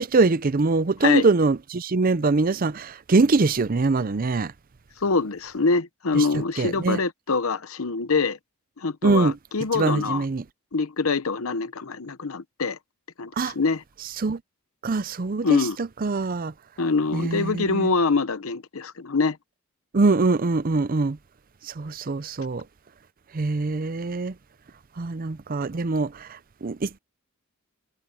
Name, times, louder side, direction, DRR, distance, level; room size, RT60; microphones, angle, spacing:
voice 1, 0.0-4.5 6.1-6.2 6.6-7.0 9.0-9.3 9.7-10.4 13.4-13.5 14.2-14.4 14.8-16.5 17.1-17.9 19.9-21.2 21.7-22.6 23.3-24.3 25.0-27.0, right 3 dB, 40° right, 0.5 m, -23 dB
voice 2, 5.0-8.4 8.8-10.2 10.7-12.8 13.2-13.8 15.4-15.8 16.8-19.4, left 4 dB, 80° left, 0.9 m, -24 dB
head